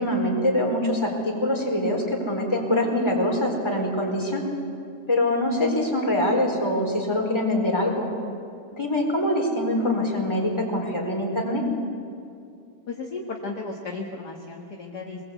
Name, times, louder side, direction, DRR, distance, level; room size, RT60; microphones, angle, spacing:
voice 1, 0.0-4.5 5.1-8.1 8.7-11.7, left 1 dB, 10° left, -1 dB, 4.1 m, -24 dB
voice 2, 12.9-15.2, left 3 dB, 40° left, 0 dB, 1.7 m, -34 dB
26.0 x 21.0 x 8.3 m, 2.4 s
omnidirectional pair, 3.7 m